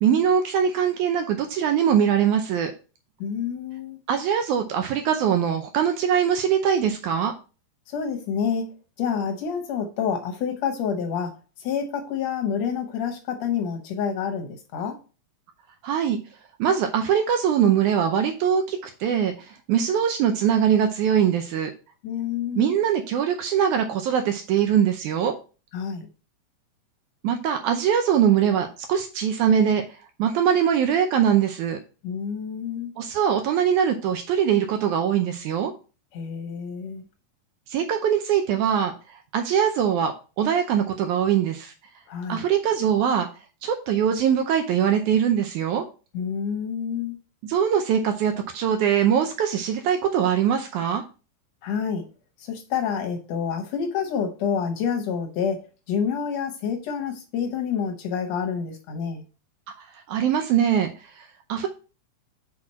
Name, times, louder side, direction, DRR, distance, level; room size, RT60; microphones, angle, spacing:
voice 1, 0.0-2.7 4.1-7.3 15.8-16.2 16.6-21.7 22.6-25.3 27.2-29.8 30.2-31.8 33.0-35.7 37.7-41.7 42.3-43.3 43.6-45.8 47.4-51.0 59.8-60.9 61.2-61.7, right 8 dB, 85° right, 1.7 m, -22 dB
voice 2, 3.2-4.0 7.9-15.0 22.0-22.7 25.7-26.1 32.0-32.9 36.1-37.0 42.1-42.4 46.1-47.2 51.6-52.0 52.4-55.6 55.9-59.2, left 7 dB, 70° left, 1.7 m, -28 dB
5.9 x 4.5 x 4.2 m
omnidirectional pair, 4.2 m